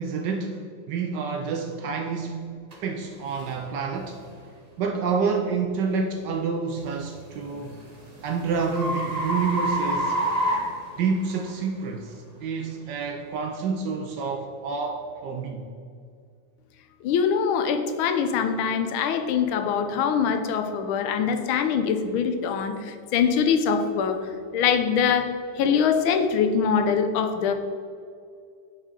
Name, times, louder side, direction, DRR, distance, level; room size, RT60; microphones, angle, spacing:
voice 1, 0.0-4.2 4.8-7.7 8.2-10.2 11.0-15.7, right 5 dB, 75° right, 4 dB, 1.0 m, -28 dB
sound 1, 2.7-2.8 3.4-3.6 4.2-4.4 7.0-11.5, right 1 dB, 45° right, 0.5 m, -28 dB
voice 2, 17.0-22.8 23.1-24.2 24.5-25.3 25.6-27.5, left 7 dB, 75° left, 8 dB, 1.4 m, -23 dB
5.5 x 4.9 x 6.5 m, 2.3 s
omnidirectional pair, 2.4 m